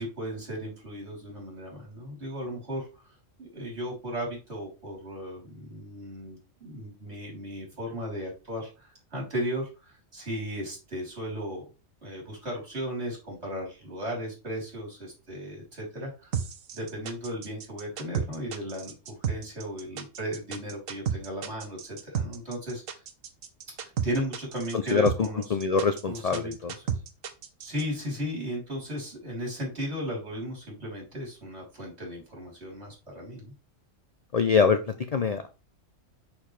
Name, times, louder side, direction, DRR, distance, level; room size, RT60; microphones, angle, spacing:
voice 1, 0.0-2.9 3.4-11.7 12.0-16.3 16.7-23.0 23.8-25.4 26.1-26.5 27.6-33.5, equal, 55° right, -2 dB, 3.8 m, -35 dB
sound 1, 16.3-27.8, right 8 dB, 85° right, 1.3 m, -32 dB
voice 2, 24.7-26.7 34.3-35.5, left 5 dB, 55° left, 9 dB, 0.4 m, -25 dB
6.5 x 6.1 x 3.2 m, 0.31 s
omnidirectional pair, 1.4 m